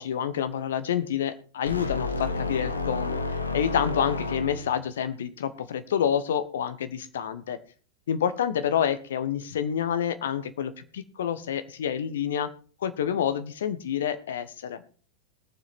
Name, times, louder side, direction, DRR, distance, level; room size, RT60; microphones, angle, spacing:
voice 1, 0.0-3.2 3.5-7.6 8.1-12.5 12.8-14.8, left 9 dB, 60° left, 12 dB, 1.3 m, -28 dB
sound 1, 1.7-4.9, left 3 dB, 80° left, 1.2 m, -30 dB
20.5 x 7.4 x 4.3 m, 0.40 s
figure-of-eight pair, 90°, 0 cm